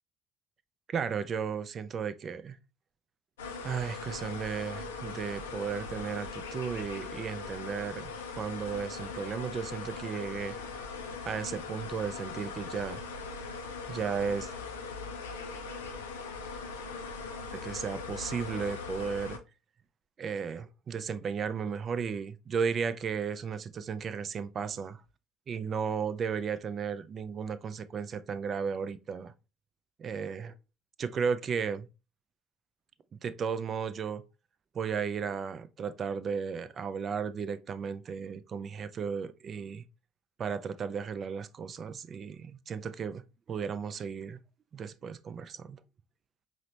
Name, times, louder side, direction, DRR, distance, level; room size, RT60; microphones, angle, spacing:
voice 1, 0.9-2.6 3.6-10.6 11.2-13.0 13.9-14.5 17.5-19.4 20.2-25.0 25.5-29.3 30.0-30.5 31.0-31.9 33.1-34.2 34.7-39.8 40.4-43.2 43.5-44.4 44.7-45.8, right 6 dB, 40° right, 0.3 m, -34 dB
sound 1, 3.4-19.4, left 4 dB, 75° left, 0.5 m, -40 dB
4.9 x 2.1 x 2.8 m
figure-of-eight pair, 60°, 0 cm